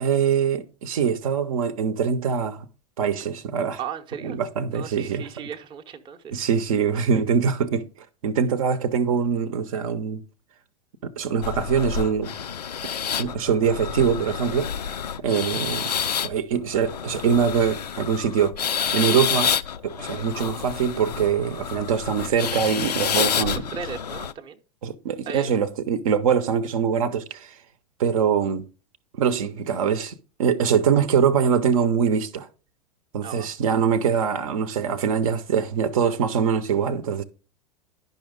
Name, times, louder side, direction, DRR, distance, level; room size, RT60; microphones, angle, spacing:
voice 1, 0.0-2.6 3.0-3.8 4.2-5.3 6.3-7.8 8.2-10.2 11.2-12.3 13.2-14.7 15.2-15.9 16.2-18.5 18.9-19.5 19.8-23.6 24.8-27.5 28.0-28.6 29.1-32.5 33.1-37.2, right 7 dB, 60° right, 0.7 m, -23 dB
voice 2, 3.8-4.4 4.7-6.4 15.2-15.3 23.1-24.6 25.2-25.5 33.2-33.5, right 7 dB, 25° right, 0.7 m, -36 dB
sound 1, 11.4-24.3, left 8 dB, 80° left, 0.4 m, -29 dB
10.5 x 5.4 x 3.6 m
figure-of-eight pair, 95°, 20 cm